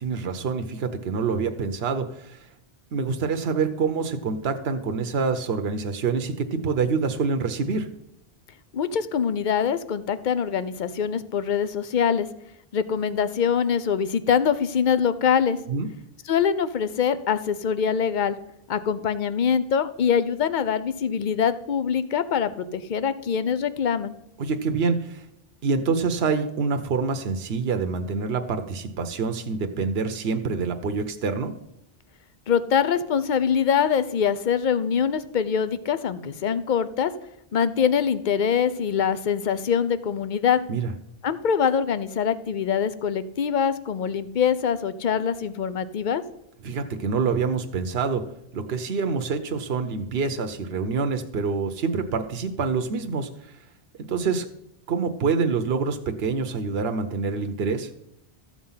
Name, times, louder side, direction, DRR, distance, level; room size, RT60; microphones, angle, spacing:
voice 1, 0.0-2.5 2.9-7.9 15.7-15.9 24.4-25.2 25.6-31.5 40.7-40.9 46.6-48.2 48.5-53.5 54.1-54.5 54.9-57.9, right 5 dB, 75° right, 7 dB, 1.1 m, -26 dB
voice 2, 8.7-12.3 12.7-15.6 16.3-18.4 18.7-24.2 32.5-37.1 37.5-40.6 41.2-46.2, left 7 dB, 50° left, 14 dB, 0.8 m, -24 dB
14.0 x 7.3 x 5.6 m, 0.80 s
omnidirectional pair, 1.0 m